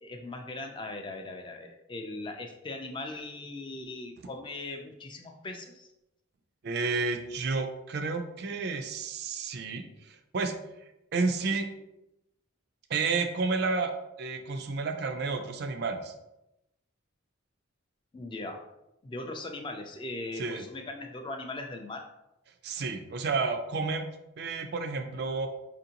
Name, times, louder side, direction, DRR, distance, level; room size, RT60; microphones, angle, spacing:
voice 1, 0.0-5.9 18.1-18.6 19.0-22.1, left 2 dB, 25° left, 4 dB, 0.3 m, -39 dB
voice 2, 6.6-10.5 11.1-11.7 12.9-13.9 14.2-16.1 20.4-20.6 22.6-24.1 24.4-25.5, right 4 dB, 55° right, 6 dB, 0.3 m, -31 dB
4.3 x 2.6 x 2.8 m, 0.90 s
head